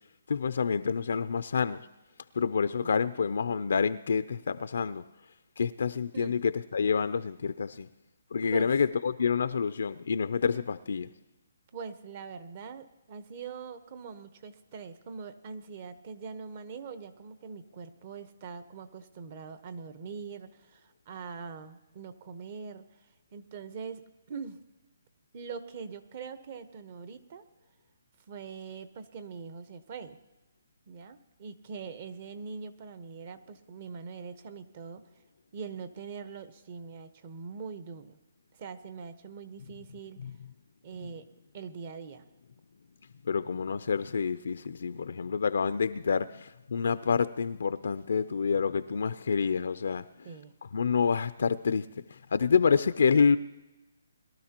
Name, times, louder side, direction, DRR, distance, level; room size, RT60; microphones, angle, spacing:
voice 1, 0.3-1.8 2.3-5.0 5.6-7.9 8.3-11.1 40.2-40.3 43.3-50.0 50.7-53.4, left 6 dB, 70° left, 0.4 m, -28 dB
voice 2, 11.7-22.8 23.3-24.6 25.3-27.4 28.3-30.2 30.9-35.0 35.5-38.2 38.6-40.2 40.8-41.3 41.5-42.2 50.2-50.5, right 5 dB, 40° right, 0.9 m, -43 dB
21.5 x 12.0 x 2.9 m
hypercardioid pair, 155°, 0 cm